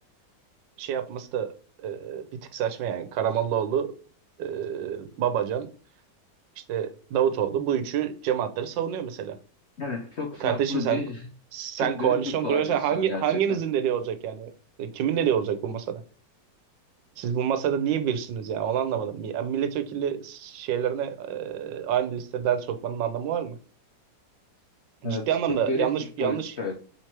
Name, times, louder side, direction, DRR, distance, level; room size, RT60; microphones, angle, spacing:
voice 1, 0.8-1.5 1.8-2.2 2.5-3.9 4.4-5.7 6.6-9.4 10.4-11.0 11.5-14.5 14.8-16.0 17.2-23.6 25.0-26.5, right 9 dB, 85° right, 9 dB, 1.3 m, -27 dB
voice 2, 9.8-11.3 11.8-13.6 25.0-25.9 26.2-26.7, left 3 dB, 55° left, 0 dB, 0.7 m, -32 dB
4.5 x 3.4 x 2.8 m, 0.40 s
omnidirectional pair, 1.9 m